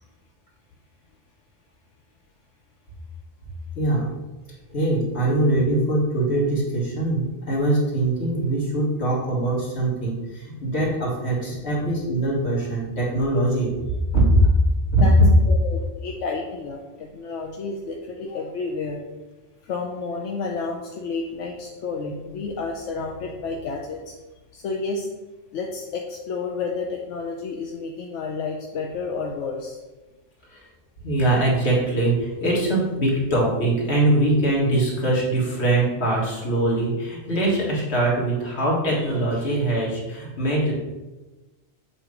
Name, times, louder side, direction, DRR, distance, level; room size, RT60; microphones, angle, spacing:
voice 1, 4.7-13.7 14.1-14.5 14.9-15.2 30.5-30.7 31.0-40.7, right 1 dB, 65° left, -5 dB, 2.0 m, -22 dB
voice 2, 11.5-11.9 15.0-15.1 15.5-19.0 19.6-24.2 24.5-25.1 25.5-29.8, left 4 dB, 85° left, 1 dB, 1.0 m, -31 dB
7.5 x 2.9 x 4.8 m, 1.1 s
omnidirectional pair, 1.2 m